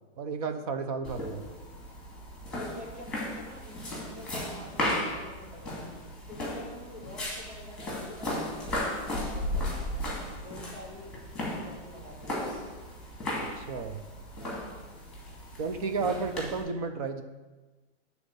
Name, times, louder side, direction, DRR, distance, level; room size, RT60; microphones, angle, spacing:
voice 1, 0.2-1.4 13.6-14.0 15.6-17.2, right 4 dB, 35° right, 8 dB, 0.4 m, -32 dB
sound 1, 1.0-16.6, left 1 dB, ahead, 2.3 m, -36 dB
voice 2, 2.5-5.9 6.3-10.1 10.4-12.5 14.4-14.7, equal, 65° right, -5 dB, 3.0 m, -47 dB
9.5 x 4.0 x 6.6 m, 1.2 s
hypercardioid pair, 150°, 36 cm